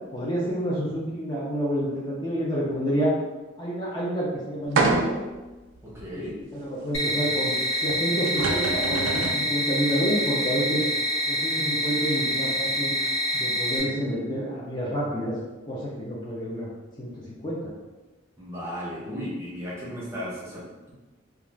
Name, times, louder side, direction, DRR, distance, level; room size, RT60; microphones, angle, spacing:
voice 1, 0.1-3.2 3.6-5.2 6.2-6.3 6.5-7.5 7.8-10.8 11.3-12.9 13.3-15.3 15.7-16.7 17.0-17.7, equal, 20° left, -6 dB, 0.4 m, -28 dB
sound 1, 4.8-5.4 6.0-6.1 7.9-8.0 8.3-9.4, right 3 dB, 70° right, 0.3 m, -25 dB
voice 2, 5.8-6.4 18.4-20.9, equal, 15° right, -6 dB, 0.6 m, -35 dB
sound 2, 6.9-13.8, equal, 85° left, 0.6 m, -26 dB
2.3 x 2.3 x 3.1 m, 1.2 s
head